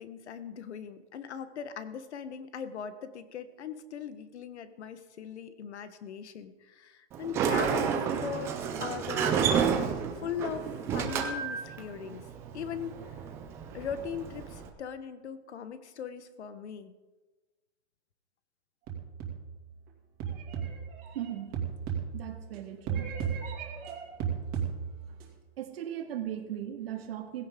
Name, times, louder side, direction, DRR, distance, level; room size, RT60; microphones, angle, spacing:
voice 1, 0.0-9.5 10.2-12.3 12.5-13.2 13.7-16.9, left 7 dB, 85° left, 12 dB, 1.4 m, -40 dB
Sliding door, 7.1-14.7, right 7 dB, 10° right, 0.4 m, -31 dB
sound 1, 18.9-19.6 20.2-22.6 22.9-25.2, right 7 dB, 25° right, 2.5 m, -35 dB
voice 2, 21.1-21.5 22.1-23.1 25.6-27.5, right 11 dB, 60° right, 4 dB, 2.2 m, -37 dB
16.0 x 16.0 x 3.8 m, 1.2 s
supercardioid pair, 165°, 33 cm